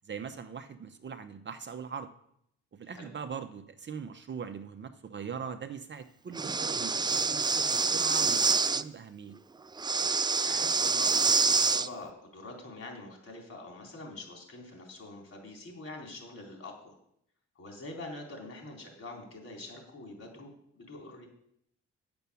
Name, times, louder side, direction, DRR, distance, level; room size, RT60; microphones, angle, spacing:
voice 1, 0.0-2.1 2.7-9.3, right 6 dB, 40° right, 7 dB, 0.8 m, -41 dB
Breathing, 6.3-8.8 9.8-11.9, right 4 dB, 15° right, 0.4 m, -26 dB
voice 2, 10.4-17.0 17.6-21.3, left 2 dB, 50° left, 1 dB, 3.8 m, -45 dB
9.0 x 7.0 x 7.0 m, 0.72 s
cardioid pair, 90°, 30 cm